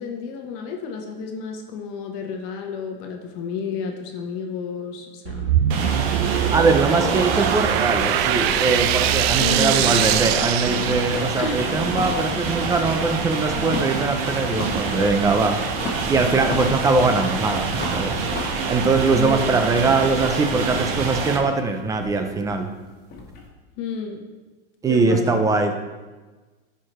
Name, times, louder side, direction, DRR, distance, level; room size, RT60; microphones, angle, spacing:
voice 1, 0.0-5.6 9.4-10.0 11.4-11.7 19.1-19.6 23.8-24.3 24.9-25.4, left 5 dB, 45° left, 3 dB, 1.0 m, -31 dB
sound 1, 5.2-11.5, right 12 dB, 70° right, 0.5 m, -23 dB
sound 2, 5.7-21.4, right 4 dB, 50° right, 1.1 m, -26 dB
voice 2, 6.5-15.6 16.1-18.1 18.7-22.7 24.8-25.7, right 3 dB, 10° right, 6 dB, 0.4 m, -21 dB
sound 3, 7.6-9.9 10.1-12.4 12.7-14.0 14.4-14.9 15.2-17.3 17.7-23.5, left 3 dB, 30° left, 1.6 m, -37 dB
10.5 x 4.7 x 3.0 m, 1.3 s
supercardioid pair, 140°, 32 cm